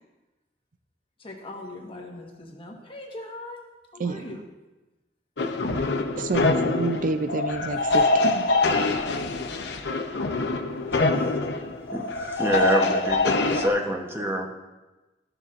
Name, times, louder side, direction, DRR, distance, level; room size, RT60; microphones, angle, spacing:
voice 1, 1.2-3.6 3.9-4.4, left 2 dB, 30° left, 0 dB, 1.3 m, -40 dB
sound 1, 5.4-13.7, left 3 dB, 75° left, 0.6 m, -24 dB
voice 2, 6.2-8.5 12.9-13.1, right 3 dB, 50° right, 9 dB, 0.4 m, -29 dB
voice 3, 11.9-13.2 13.5-14.5, right 1 dB, 15° right, 1 dB, 0.9 m, -26 dB
13.5 x 6.7 x 2.5 m, 1.1 s
head